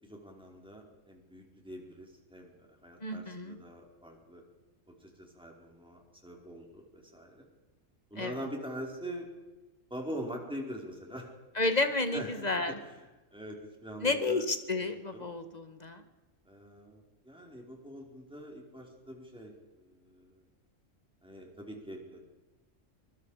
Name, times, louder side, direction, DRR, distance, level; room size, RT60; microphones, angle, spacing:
voice 1, 0.0-4.4 5.0-7.4 8.1-9.3 9.9-11.3 12.1-12.5 12.8-13.0 13.3-14.4 14.8-14.9 15.1-15.3 16.5-20.4 21.2-22.2, equal, 5° right, 0 dB, 4.7 m, -44 dB
voice 2, 3.0-3.6 8.2-8.4 11.6-12.8 14.0-16.0, left 2 dB, 30° left, 8 dB, 1.9 m, -31 dB
24.0 x 23.5 x 5.0 m, 1.2 s
omnidirectional pair, 1.3 m